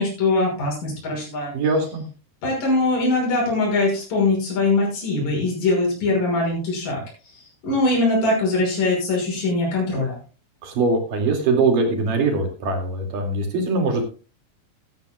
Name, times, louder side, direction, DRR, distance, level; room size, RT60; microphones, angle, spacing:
voice 1, 0.0-1.5 2.4-7.0 7.6-10.2, left 2 dB, 55° left, -2 dB, 7.5 m, -22 dB
voice 2, 1.5-2.0 10.6-14.0, right 3 dB, 60° right, 3 dB, 3.8 m, -22 dB
14.5 x 14.0 x 2.3 m, 0.34 s
omnidirectional pair, 4.7 m